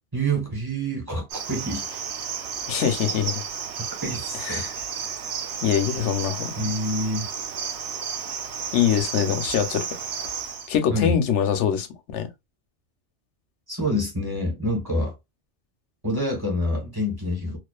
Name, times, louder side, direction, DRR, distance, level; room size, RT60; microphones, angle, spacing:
voice 1, 0.1-2.0 4.0-4.9 6.6-7.3 10.9-11.2 13.7-15.1 16.0-17.6, equal, 20° right, 1.1 m, -27 dB
Cricket, 1.3-10.7, right 6 dB, 75° right, 0.9 m, -32 dB
voice 2, 2.7-3.4 4.4-4.7 5.6-6.7 8.7-9.9 10.7-11.9 12.1-12.3, left 9 dB, 85° left, 0.9 m, -23 dB
2.4 x 2.3 x 2.2 m
omnidirectional pair, 1.2 m